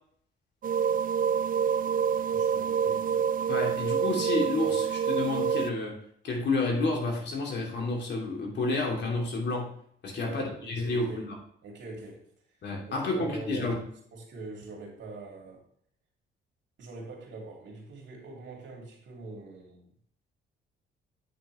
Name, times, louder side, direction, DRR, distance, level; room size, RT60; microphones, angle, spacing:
sound 1, 0.6-5.7, right 7 dB, 45° right, 0.4 m, -27 dB
voice 1, 2.3-3.3 10.2-11.3 11.6-12.3 12.9-15.6 16.8-19.9, right 3 dB, 70° right, -1 dB, 2.7 m, -43 dB
voice 2, 3.5-5.9 6.2-9.6 10.0-11.3 12.6-13.8, left 2 dB, 60° left, -1 dB, 2.8 m, -30 dB
8.7 x 6.0 x 3.2 m, 0.62 s
cardioid pair, 90°, 20 cm